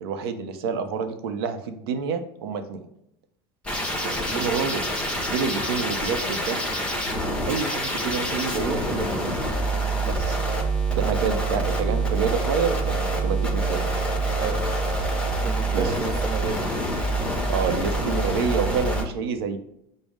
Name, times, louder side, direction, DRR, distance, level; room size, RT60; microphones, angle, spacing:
voice 1, 0.0-2.8 4.0-4.9 5.3-6.6 7.4-9.4 10.0-10.4 11.0-13.9 15.7-15.9 17.5-19.6, right 6 dB, 85° right, 0.6 m, -28 dB
sound 1, 3.6-19.0, right 2 dB, 10° left, 1.0 m, -26 dB
voice 2, 14.4-14.7 15.4-16.7, right 6 dB, 30° right, 0.4 m, -32 dB
5.2 x 2.0 x 4.8 m
supercardioid pair, 125°, 12 cm